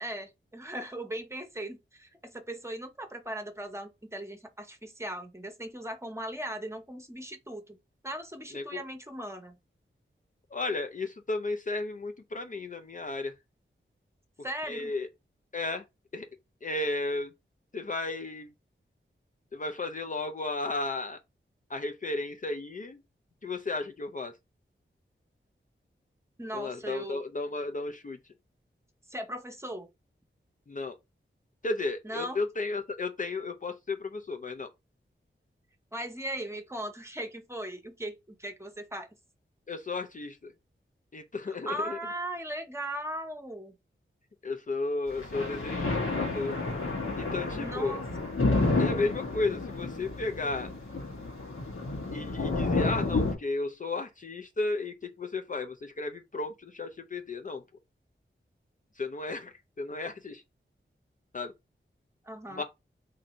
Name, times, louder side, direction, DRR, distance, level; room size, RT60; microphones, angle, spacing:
voice 1, 0.0-7.8 8.0-9.6 14.4-14.9 26.4-27.2 29.1-29.9 32.0-32.4 35.9-39.1 41.7-43.8 47.5-48.0 62.2-62.6, right 1 dB, 15° right, 0.8 m, -38 dB
voice 2, 8.5-8.8 10.5-13.3 14.7-15.1 15.5-15.8 16.1-16.3 16.6-17.3 17.7-18.5 19.5-21.2 21.7-23.0 23.4-24.3 26.5-28.2 30.7-31.0 31.6-34.7 39.7-40.5 41.1-42.0 44.4-46.5 47.2-48.0 48.8-50.7 52.1-57.6 59.0-60.4 61.3-61.5 62.5-62.6, left 3 dB, 40° left, 0.4 m, -34 dB
sound 1, 45.1-53.3, left 3 dB, 85° left, 1.1 m, -30 dB
2.7 x 2.6 x 4.1 m
wide cardioid pair, 80°, 21 cm